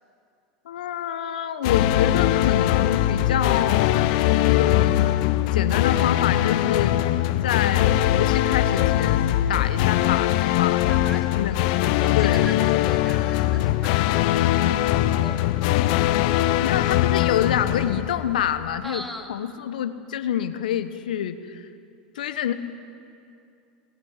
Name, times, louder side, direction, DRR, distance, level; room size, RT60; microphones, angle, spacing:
voice 1, 0.6-4.0 4.4-5.1 5.5-7.0 7.4-10.9 11.1-11.6 12.2-12.5 16.6-19.0 19.3-21.7 22.1-22.5, left 10 dB, 80° left, 11 dB, 1.2 m, -27 dB
sound 1, 1.6-18.7, left 13 dB, 65° left, 0.8 m, -21 dB
voice 2, 10.9-14.7 15.2-16.1 18.8-19.3, left 1 dB, ahead, 1 dB, 2.7 m, -40 dB
21.0 x 17.0 x 9.8 m, 2.5 s
hypercardioid pair, 90°, 4 cm